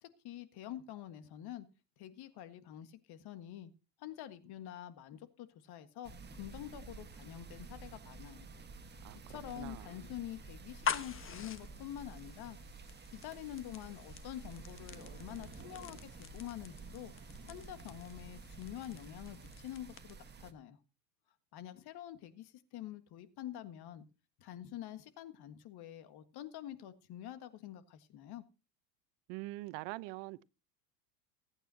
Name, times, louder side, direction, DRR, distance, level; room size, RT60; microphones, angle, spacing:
voice 1, 0.0-1.6 2.0-3.7 4.0-8.5 8.9-9.0 9.3-12.6 13.1-17.1 17.5-20.8 21.5-24.0 24.4-28.4, left 12 dB, 50° left, 1.7 m, -47 dB
sound 1, 6.0-20.5, right 4 dB, 20° right, 1.5 m, -51 dB
voice 2, 9.0-10.1 29.3-30.4, right 20 dB, 60° right, 0.9 m, -44 dB
sound 2, 10.6-20.3, left 7 dB, 25° left, 1.3 m, -45 dB
22.0 x 9.2 x 2.8 m
supercardioid pair, 105°, 49 cm